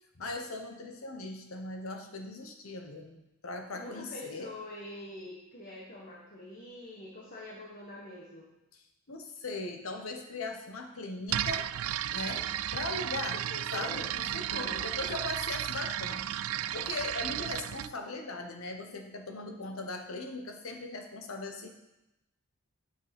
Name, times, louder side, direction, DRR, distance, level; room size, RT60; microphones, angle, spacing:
voice 1, 0.2-4.5 8.7-8.8 9.1-11.7 12.1-13.4 13.7-21.7, left 2 dB, 75° left, 5 dB, 1.2 m, -39 dB
voice 2, 3.7-8.5 13.3-14.1 14.4-14.9, left 1 dB, 45° left, -3 dB, 1.6 m, -45 dB
sound 1, 11.3-17.9, right 12 dB, 75° right, 0.3 m, -34 dB
9.5 x 6.3 x 5.3 m, 0.93 s
head